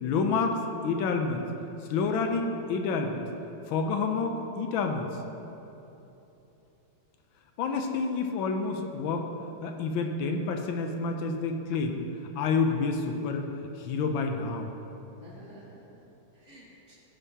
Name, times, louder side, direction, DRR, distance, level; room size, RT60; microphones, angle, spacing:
voice 1, 0.0-1.4 1.9-3.2 3.7-5.1 7.6-9.3 9.6-12.0 12.3-13.5 13.8-14.7, left 4 dB, 80° left, 4 dB, 1.4 m, -28 dB
voice 2, 15.2-16.9, equal, 30° left, -9 dB, 1.3 m, -52 dB
15.5 x 5.4 x 2.8 m, 3.0 s
omnidirectional pair, 2.2 m